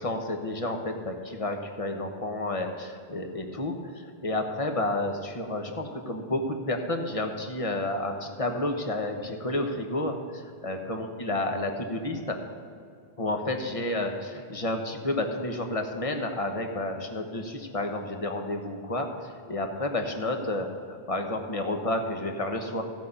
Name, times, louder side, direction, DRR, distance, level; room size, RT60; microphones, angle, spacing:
voice 1, 0.0-12.4 13.2-22.8, left 1 dB, 35° left, 4 dB, 1.2 m, -31 dB
16.0 x 5.6 x 6.7 m, 2.4 s
omnidirectional pair, 1.0 m